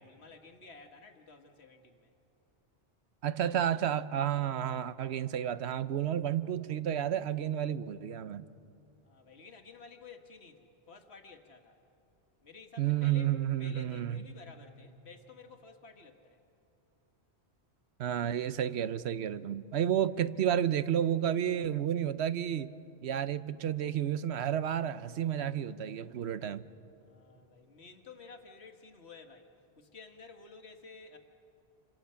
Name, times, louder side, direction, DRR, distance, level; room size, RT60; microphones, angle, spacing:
voice 1, 0.0-2.1 9.0-11.8 12.4-16.4 27.0-29.5 29.8-31.2, left 4 dB, 70° left, 5 dB, 1.9 m, -53 dB
voice 2, 3.2-8.4 12.8-14.2 18.0-22.7 23.0-26.6, right 10 dB, 70° right, 14 dB, 1.0 m, -31 dB
29.0 x 26.0 x 5.7 m, 2.8 s
omnidirectional pair, 1.1 m